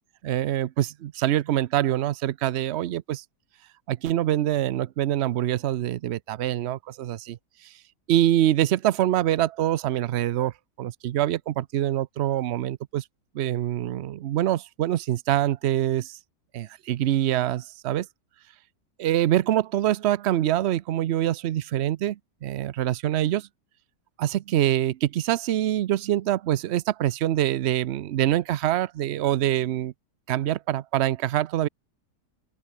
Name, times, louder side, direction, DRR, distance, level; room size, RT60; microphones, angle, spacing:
voice 1, 0.2-3.2 3.9-7.4 8.1-13.0 13.3-16.2 16.5-18.1 19.0-23.5 24.2-29.9 30.3-31.7, right 12 dB, 85° right, 0.5 m, -25 dB
open air
omnidirectional pair, 1.8 m